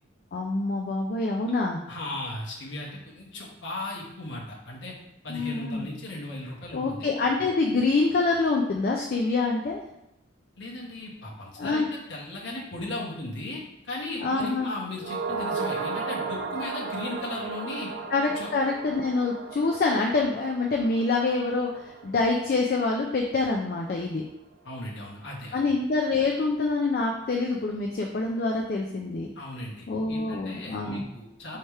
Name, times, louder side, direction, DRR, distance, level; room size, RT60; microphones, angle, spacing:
voice 1, 0.3-1.8 5.3-5.9 6.7-9.8 11.6-11.9 14.2-14.7 18.1-24.2 25.5-29.3 29.9-31.0, left 3 dB, 45° left, 1 dB, 0.3 m, -26 dB
voice 2, 1.9-4.9 5.2-7.0 10.6-17.9 18.4-18.5 24.6-25.6 29.4-31.6, left 2 dB, 65° left, -3 dB, 0.9 m, -37 dB
sound 1, 15.0-23.5 23.7-23.8, right 4 dB, 50° right, 0.3 m, -35 dB
3.3 x 2.8 x 4.5 m, 0.87 s
head